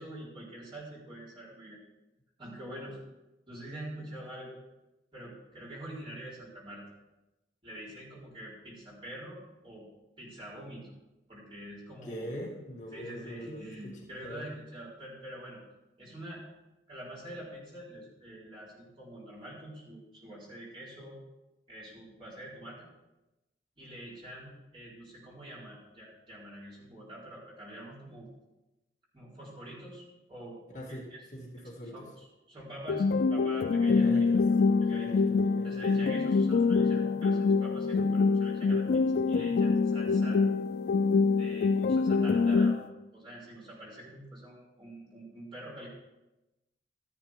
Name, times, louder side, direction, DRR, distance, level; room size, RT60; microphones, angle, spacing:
voice 1, 0.0-1.8 2.4-3.0 3.5-4.6 5.1-6.8 7.6-9.9 10.2-10.9 11.3-12.3 12.9-15.6 16.0-16.4 16.9-21.2 21.7-22.8 23.8-28.3 29.1-30.0 30.3-31.0 31.9-34.3 34.8-35.2 35.6-40.4 41.4-45.9, right 1 dB, 30° right, -7 dB, 4.5 m, -45 dB
voice 2, 12.0-14.5 30.7-32.1 33.9-35.9, equal, 40° left, -4 dB, 2.2 m, -43 dB
sound 1, 32.9-42.9, left 4 dB, 65° left, 0.3 m, -25 dB
13.0 x 11.0 x 3.7 m, 1.0 s
head